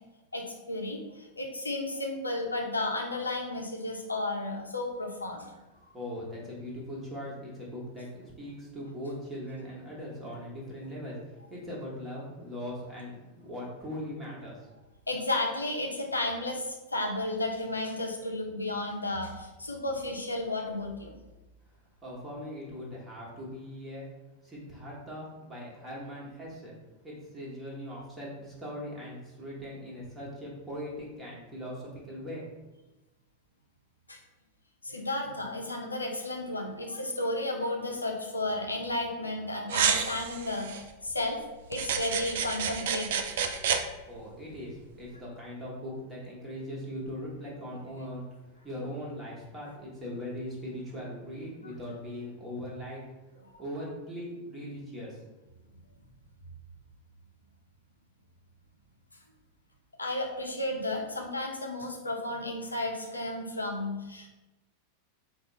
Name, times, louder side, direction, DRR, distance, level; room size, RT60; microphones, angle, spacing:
voice 1, 0.3-5.5 15.1-21.1 34.1-34.2 34.8-41.4 41.7-43.2 53.5-53.6 60.0-64.3, left 2 dB, 80° left, 1 dB, 0.6 m, -33 dB
voice 2, 5.9-14.7 22.0-24.1 24.4-26.8 27.0-32.5 44.1-53.0 53.6-55.2, equal, 15° right, -5 dB, 1.2 m, -40 dB
sound 1, 39.7-40.8 41.7-43.8, right 7 dB, 55° right, 0.4 m, -29 dB
4.1 x 2.0 x 4.0 m, 1.1 s
figure-of-eight pair, 90°, 0 cm